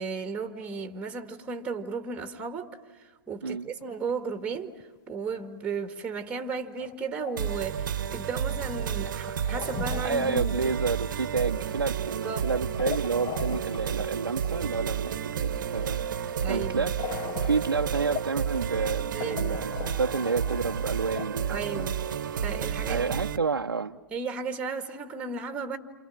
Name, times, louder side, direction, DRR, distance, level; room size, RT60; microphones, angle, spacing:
voice 1, 0.0-10.7 12.2-12.5 16.4-16.9 19.1-19.6 21.5-22.0 22.4-23.2 24.1-25.8, right 5 dB, 10° right, 1.8 m, -35 dB
sound 1, 3.7-4.2 4.5-4.8 5.3-5.4 5.6-5.7 6.8-7.6 8.6-10.7 10.9-11.4 12.1-14.1 14.4-14.8 17.0-18.5 18.9-19.0 19.2-21.3, left 12 dB, 30° left, 0.7 m, -39 dB
sound 2, 7.4-23.4, right 8 dB, 60° right, 1.1 m, -31 dB
voice 2, 10.0-16.9 17.4-19.7 20.0-21.9 22.9-24.0, right 4 dB, 85° right, 0.8 m, -30 dB
29.0 x 28.5 x 6.4 m
figure-of-eight pair, 110°, 12 cm